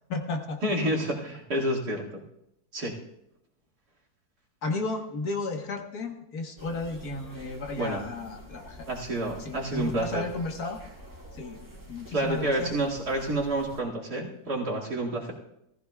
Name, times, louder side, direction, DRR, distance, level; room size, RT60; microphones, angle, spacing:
voice 1, 0.1-0.6 4.6-8.8 9.4-10.8 11.3-11.6 11.9-12.7, left 3 dB, 65° left, 3 dB, 1.8 m, -33 dB
voice 2, 0.6-2.2 2.7-3.0 7.8-8.0 8.9-10.2 12.1-15.3, right 1 dB, 70° right, -4 dB, 2.8 m, -29 dB
sound 1, 6.6-13.8, right 1 dB, 10° right, 2.7 m, -47 dB
18.5 x 14.5 x 2.3 m, 0.81 s
omnidirectional pair, 1.8 m